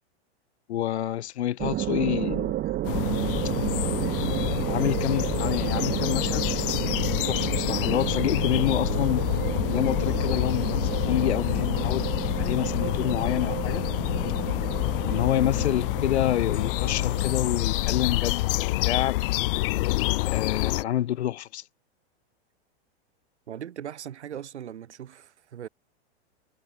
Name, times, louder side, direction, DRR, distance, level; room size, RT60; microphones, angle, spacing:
voice 1, 0.7-2.6 4.7-6.5 7.2-9.3 9.7-13.8 15.1-19.2 20.3-21.6, left 12 dB, 75° left, 4.0 m, -28 dB
sound 1, 1.6-18.7, right 14 dB, 30° right, 4.8 m, -31 dB
sound 2, 2.8-20.8, left 20 dB, 55° left, 0.7 m, -27 dB
voice 2, 23.5-25.7, right 10 dB, 85° right, 8.0 m, -39 dB
hypercardioid pair, 135°, 33 cm